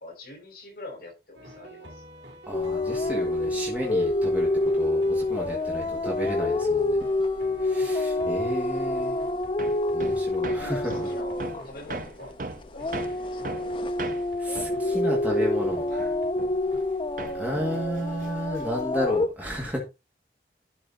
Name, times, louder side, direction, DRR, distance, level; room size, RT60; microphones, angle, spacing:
voice 1, 0.0-2.0 8.0-8.5 10.4-12.3 12.7-13.6, left 2 dB, 55° left, 5.7 m, -44 dB
sound 1, 1.3-14.4 14.7-14.9 15.2-15.3 15.7-15.9 16.2-16.3 16.7-16.8 17.2-17.3 17.7-17.8 18.2-18.3, right 1 dB, 85° right, 3.5 m, -48 dB
sound 2, 2.5-12.3 12.7-19.3, left 2 dB, 30° left, 0.5 m, -27 dB
voice 2, 2.5-4.5 4.7-7.0 7.6-9.2 9.9-11.1 14.4-15.9 17.3-19.8, equal, 10° right, 2.1 m, -32 dB
Hammer, 9.6-16.9 17.2-18.9, right 2 dB, 50° right, 0.8 m, -39 dB
11.5 x 4.8 x 4.1 m
head